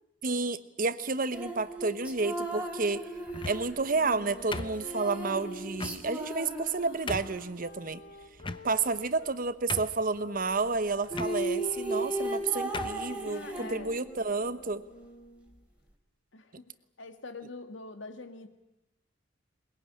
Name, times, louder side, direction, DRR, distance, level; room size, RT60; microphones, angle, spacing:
voice 1, 0.2-3.1 3.4-8.0 8.6-14.8, right 4 dB, 50° right, 13 dB, 1.0 m, -30 dB
sound 1, 1.3-7.5 10.7-10.8 11.0-14.2, right 1 dB, 5° right, 3.1 m, -36 dB
sound 2, 3.3-3.8 4.5-5.2 5.8-6.0 6.6-6.7 7.1-7.4 8.4-9.0 9.3-9.4 9.7-10.2 11.1-11.3 12.2-12.3 12.7-13.0, left 3 dB, 25° left, 0.9 m, -37 dB
sound 3, 3.8-9.4 10.1-15.6, left 1 dB, 55° left, 1.7 m, -50 dB
voice 2, 13.2-14.0 16.3-16.7 17.0-18.5, left 3 dB, 80° left, 8 dB, 2.0 m, -44 dB
21.5 x 21.0 x 10.0 m, 0.95 s
head